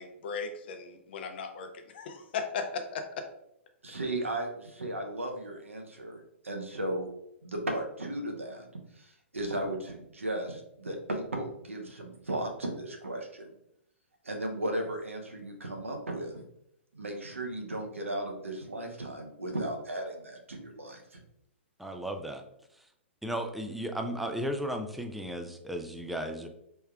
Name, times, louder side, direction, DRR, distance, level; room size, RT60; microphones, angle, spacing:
voice 1, 0.0-3.0, left 5 dB, 55° left, 6 dB, 0.6 m, -37 dB
voice 2, 3.8-7.1 7.4-8.7 9.0-13.5 14.2-16.4 16.9-21.2, right 1 dB, 90° right, 2 dB, 0.8 m, -35 dB
voice 3, 21.8-22.4 22.8-22.9 23.2-26.5, equal, ahead, 4 dB, 0.3 m, -35 dB
4.4 x 3.3 x 2.3 m, 0.77 s
figure-of-eight pair, 120°, 7 cm